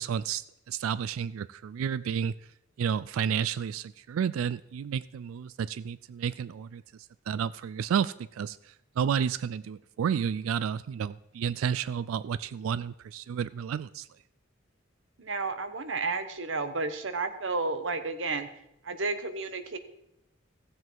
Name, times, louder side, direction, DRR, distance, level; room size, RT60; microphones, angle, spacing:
voice 1, 0.0-2.3 2.8-6.8 7.3-14.1, right 7 dB, 90° right, 18 dB, 0.3 m, -31 dB
voice 2, 15.2-18.5 18.8-19.8, right 3 dB, 65° right, 10 dB, 1.0 m, -32 dB
15.0 x 7.6 x 4.7 m, 0.81 s
head